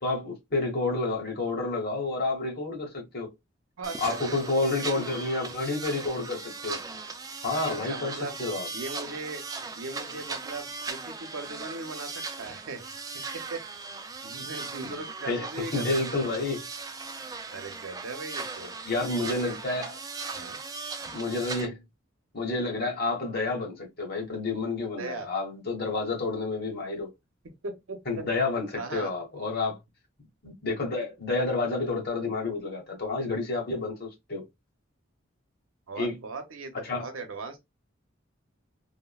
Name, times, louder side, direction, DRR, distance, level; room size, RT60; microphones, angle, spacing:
voice 1, 0.0-3.3 4.0-6.8 7.4-8.7 14.8-15.0 15.2-15.5 15.7-16.6 18.8-20.0 21.1-21.8 22.3-27.1 28.1-29.8 30.4-34.4 36.0-36.2 36.8-37.1, left 3 dB, 50° left, 1.2 m, -30 dB
sound 1, 3.8-21.7, right 4 dB, 20° right, 0.3 m, -38 dB
voice 2, 3.8-4.4 7.5-7.6 7.9-8.4 8.7-9.4 9.7-12.8 13.1-13.6 13.9-16.3 17.5-18.7 19.2-19.4 20.3-20.6 25.0-25.3 27.6-28.2 28.7-29.1 35.9-37.6, right 3 dB, 85° right, 0.7 m, -39 dB
3.4 x 2.1 x 2.3 m
head